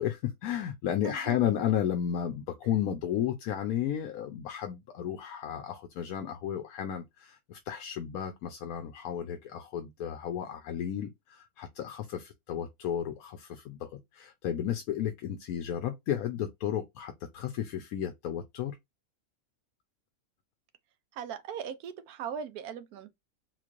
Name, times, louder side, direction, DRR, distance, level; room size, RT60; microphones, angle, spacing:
voice 1, 0.0-18.8, left 10 dB, 80° left, 1.1 m, -33 dB
voice 2, 1.0-1.6 21.1-23.1, right 8 dB, 85° right, 1.2 m, -39 dB
3.7 x 3.2 x 2.4 m
omnidirectional pair, 1.5 m